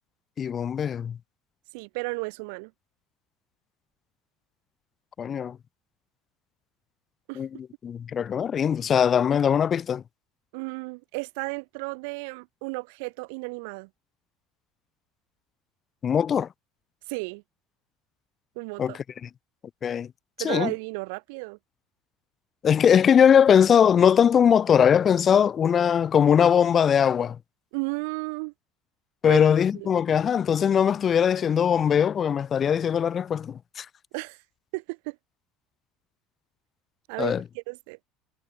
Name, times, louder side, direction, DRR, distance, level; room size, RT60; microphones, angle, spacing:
voice 1, 0.4-1.2 5.2-5.6 7.4-10.0 16.0-16.5 18.8-18.9 19.8-20.1 20.4-20.7 22.6-27.4 29.2-33.9 37.2-37.4, left 8 dB, 30° left, 0.4 m, -21 dB
voice 2, 1.7-2.7 7.3-7.4 10.5-13.9 17.1-17.4 18.5-19.0 20.4-21.6 27.7-28.5 29.2-29.4 29.7-29.9 34.1-34.4 34.7-35.2 37.1-38.0, right 32 dB, 80° right, 1.4 m, -33 dB
cardioid pair, 145°, 0 cm